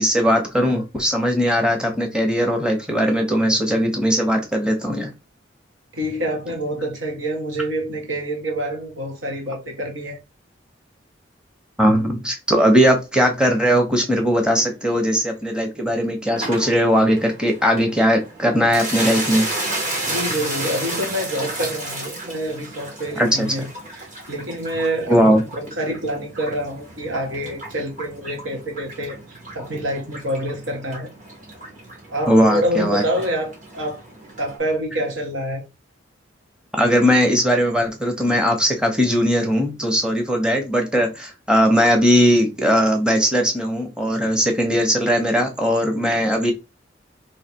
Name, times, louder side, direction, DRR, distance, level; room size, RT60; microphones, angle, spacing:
voice 1, 0.0-5.1 11.8-19.5 23.2-23.5 25.1-25.4 32.3-33.0 36.7-46.5, equal, 5° right, 0.8 m, -19 dB
voice 2, 5.9-10.2 20.1-29.2 29.5-31.1 32.1-34.0 34.4-35.6, equal, 85° right, 1.2 m, -27 dB
sound 1, 16.4-34.6, right 2 dB, 40° right, 1.5 m, -33 dB
3.2 x 2.8 x 4.4 m
head